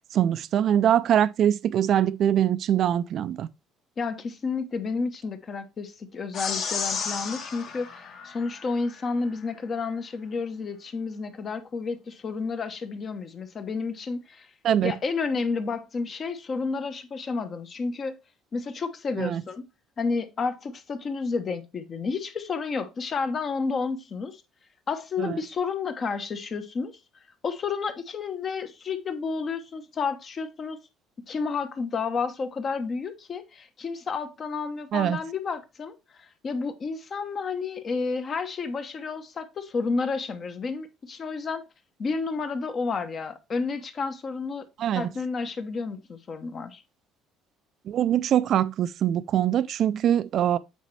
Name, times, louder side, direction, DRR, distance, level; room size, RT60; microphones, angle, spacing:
voice 1, 0.1-3.5 14.6-14.9 19.2-19.4 25.2-25.4 34.9-35.2 44.8-45.1 47.9-50.6, right 10 dB, 50° right, 0.4 m, -23 dB
voice 2, 4.0-14.5 14.8-18.2 18.5-19.7 20.0-24.4 24.9-27.0 27.4-30.8 31.3-41.6 42.0-44.7 44.9-46.8, left 4 dB, 35° left, 0.8 m, -31 dB
sound 1, 6.3-9.0, left 5 dB, 50° left, 1.6 m, -33 dB
8.3 x 4.2 x 3.2 m
cardioid pair, 135°, 0 cm